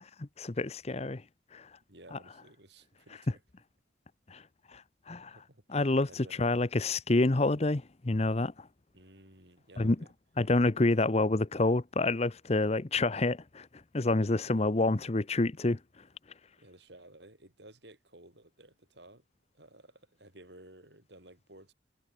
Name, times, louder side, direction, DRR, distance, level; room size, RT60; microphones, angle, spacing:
voice 1, 0.2-1.2 1.5-1.7 2.1-2.2 4.3-4.4 4.7-4.8 5.1-5.3 5.7-8.7 9.8-10.0 10.4-13.7 13.9-15.8, left 2 dB, 35° left, 0.8 m, -28 dB
voice 2, 1.9-3.4 5.1-6.6 8.9-10.1 14.4-14.7 16.6-19.2 19.5-21.7, right 1 dB, 60° right, 6.6 m, -55 dB
head